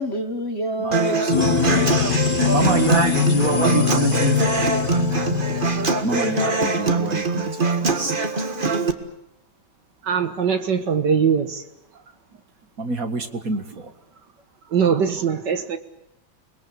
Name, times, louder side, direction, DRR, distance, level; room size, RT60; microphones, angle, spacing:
voice 1, 0.0-3.2 3.5-3.7, equal, 35° left, 1.6 m, -29 dB
voice 2, 0.8-2.2 2.5-4.7 6.0-7.9 12.8-13.9, right 4 dB, 45° right, 2.2 m, -27 dB
Human voice / Acoustic guitar, 0.9-8.9, right 3 dB, 25° right, 1.7 m, -23 dB
sound 1, 1.3-6.6, left 9 dB, 55° left, 1.8 m, -23 dB
voice 3, 10.0-11.6 13.7-13.8 14.7-15.8, right 6 dB, 60° right, 2.0 m, -21 dB
28.5 x 21.0 x 8.5 m
omnidirectional pair, 2.2 m